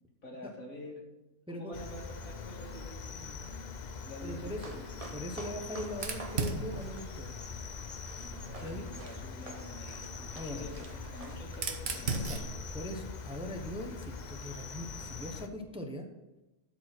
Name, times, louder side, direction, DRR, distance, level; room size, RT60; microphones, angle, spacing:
voice 1, 0.2-1.0 1.5-3.4 4.0-5.0 8.1-12.5, left 1 dB, 90° left, -1 dB, 2.5 m, -47 dB
Cricket, 1.7-15.5, left 4 dB, 45° left, 0.6 m, -43 dB
voice 2, 4.2-4.8 5.1-7.4 8.6-8.9 10.3-10.7 12.1-12.4 12.7-16.1, left 1 dB, 5° right, 3 dB, 0.9 m, -41 dB
sound 1, 4.5-11.4, right 3 dB, 30° right, 0.9 m, -51 dB
Fire, 5.9-8.7 9.8-14.0, right 4 dB, 55° right, 1.2 m, -39 dB
12.0 x 5.0 x 6.1 m, 1.0 s
omnidirectional pair, 1.4 m